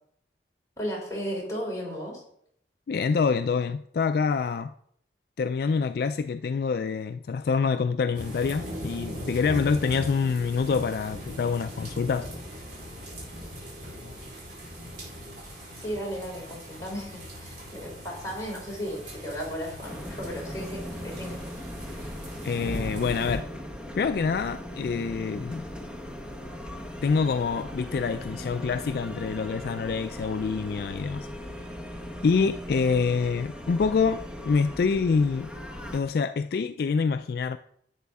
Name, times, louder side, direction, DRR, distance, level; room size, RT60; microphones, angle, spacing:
voice 1, 0.8-2.2 15.7-21.4, equal, 15° left, -3 dB, 3.3 m, -35 dB
voice 2, 2.9-4.7 5.4-12.3 22.4-23.5 24.0-25.7 27.0-31.3 32.2-35.5 35.9-37.6, left 5 dB, 55° left, 10 dB, 0.3 m, -26 dB
sound 1, 8.1-23.4, equal, 45° right, 4.5 m, -39 dB
sound 2, 19.8-36.0, equal, 5° right, 0.9 m, -39 dB
11.0 x 8.3 x 3.5 m, 0.68 s
head